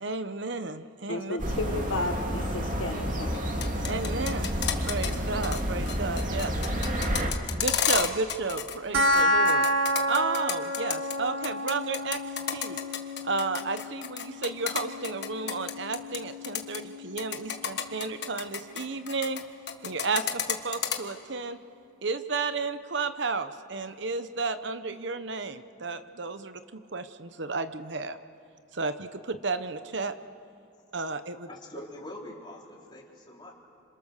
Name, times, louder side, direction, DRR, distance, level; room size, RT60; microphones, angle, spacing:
voice 1, 0.0-1.4 3.9-4.5 4.9-6.5 7.5-9.7 10.1-12.2 12.5-12.8 13.2-19.4 19.8-21.6 22.0-28.2 28.7-30.1 30.9-31.5, right 3 dB, 65° right, 10 dB, 1.0 m, -32 dB
voice 2, 1.1-3.5, left 2 dB, 75° left, 6 dB, 1.5 m, -33 dB
sound 1, 1.4-7.3, equal, 40° right, 2.7 m, -30 dB
sound 2, 3.5-5.2 5.4-5.6 5.9-8.8 9.0-11.1 11.4-16.2 16.4-16.8 17.2-19.4 19.7-21.0, left 8 dB, 55° left, 1.5 m, -30 dB
sound 3, 8.9-19.9, equal, 85° right, 1.7 m, -31 dB
voice 3, 31.5-33.5, left 1 dB, 25° left, -3 dB, 3.7 m, -44 dB
28.5 x 27.0 x 6.8 m, 2.5 s
head